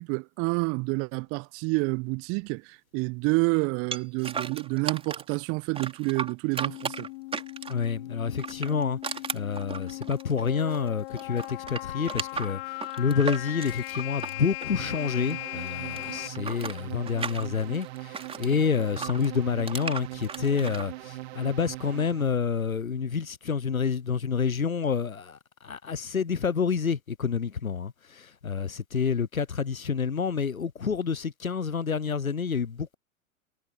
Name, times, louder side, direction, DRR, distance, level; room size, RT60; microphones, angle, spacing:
voice 1, 0.0-7.1, right 29 dB, 35° right, 1.0 m, -28 dB
sound 1, 3.9-5.4 5.7-7.9 8.3-10.9 11.1-15.3 15.6-18.5 19.0-20.9, right 5 dB, 15° right, 4.3 m, -36 dB
sound 2, 6.6-16.3, left 21 dB, 45° left, 1.5 m, -38 dB
voice 2, 7.7-12.6 13.0-25.4 25.6-33.0, left 6 dB, 85° left, 1.0 m, -28 dB
sound 3, 14.8-22.3, right 19 dB, 50° right, 2.9 m, -41 dB
figure-of-eight pair, 100°, 41 cm